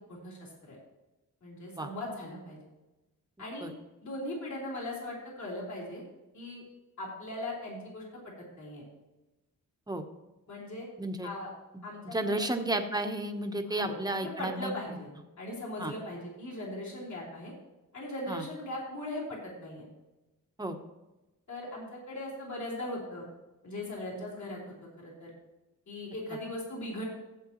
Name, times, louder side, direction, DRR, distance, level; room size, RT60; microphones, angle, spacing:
voice 1, 0.1-0.8 1.4-2.6 3.4-3.7 4.0-6.0 6.3-6.6 7.0-8.0 8.6-8.9 10.5-10.9 11.2-11.5 11.8-12.5 13.7-13.9 14.4-15.1 15.4-17.5 17.9-19.8 21.5-23.3 23.6-24.6 25.0-25.3 25.9-27.0, left 1 dB, 55° left, -4 dB, 3.6 m, -39 dB
voice 2, 11.0-11.3 12.0-14.7 15.8-15.9 18.3-18.4 20.6-20.8, right 2 dB, 10° right, 5 dB, 1.0 m, -32 dB
15.5 x 8.5 x 3.0 m, 1.0 s
wide cardioid pair, 155°, 33 cm